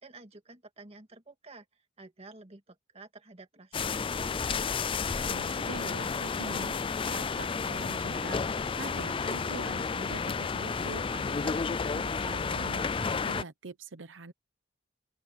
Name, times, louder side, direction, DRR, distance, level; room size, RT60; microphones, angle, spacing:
voice 1, 0.0-1.7 2.0-4.7, right 3 dB, 35° right, 1.9 m, -51 dB
sound 1, 3.7-13.4, left 5 dB, 30° left, 0.4 m, -31 dB
voice 2, 5.2-14.3, right 3 dB, 75° right, 0.9 m, -44 dB
open air
head